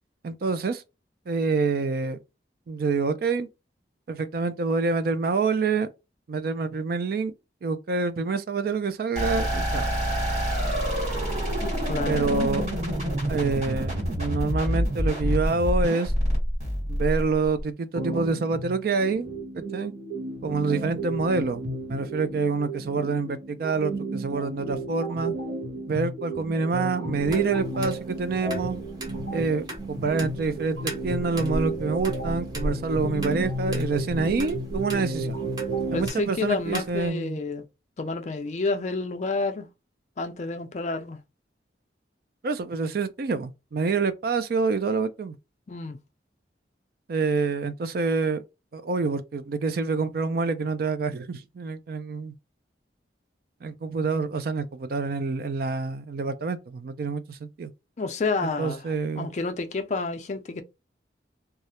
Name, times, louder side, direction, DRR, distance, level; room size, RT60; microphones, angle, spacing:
voice 1, 0.2-0.8 1.3-2.2 2.7-3.5 4.1-5.9 6.3-7.3 7.6-9.9 12.0-12.7 13.3-16.1 16.9-19.3 19.5-19.9 20.4-25.3 25.9-28.8 29.3-35.4 35.9-37.4 42.4-45.3 47.1-48.4 48.7-52.3 53.6-57.7 58.6-59.3, right 4 dB, 55° right, 0.4 m, -27 dB
sound 1, 9.2-17.6, equal, 40° right, 1.4 m, -27 dB
voice 2, 11.6-12.5 35.9-37.7 38.0-39.7 40.2-41.2 45.7-46.0 58.0-60.6, left 3 dB, 40° left, 0.4 m, -30 dB
sound 2, 17.9-36.1, right 2 dB, 85° right, 0.8 m, -33 dB
sound 3, 27.2-37.1, right 1 dB, 20° right, 0.6 m, -38 dB
2.3 x 2.1 x 2.8 m
head